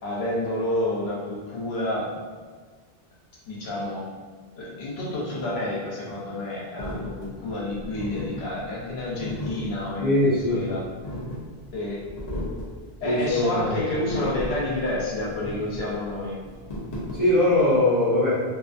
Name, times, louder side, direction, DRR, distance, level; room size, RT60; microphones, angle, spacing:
voice 1, 0.0-2.1 3.5-4.1 4.6-10.2 10.5-10.8 11.7-12.0 13.0-16.4, left 1 dB, 80° left, -5 dB, 1.0 m, -29 dB
sound 1, 6.8-17.7, left 1 dB, 45° left, 0.7 m, -35 dB
voice 2, 10.0-10.6 13.0-13.8 17.1-18.4, left 1 dB, 20° right, -12 dB, 0.8 m, -21 dB
2.5 x 2.4 x 2.5 m, 1.6 s
omnidirectional pair, 1.0 m